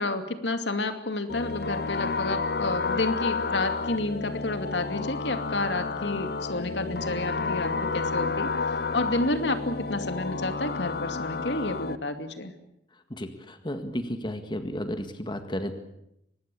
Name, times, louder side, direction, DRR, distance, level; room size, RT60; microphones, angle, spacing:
voice 1, 0.0-12.5, left 2 dB, 75° left, 8 dB, 2.6 m, -30 dB
sound 1, 1.3-12.0, left 4 dB, 60° left, 0.9 m, -30 dB
voice 2, 13.1-15.7, equal, 25° left, 8 dB, 1.8 m, -33 dB
24.5 x 20.5 x 8.5 m, 0.80 s
head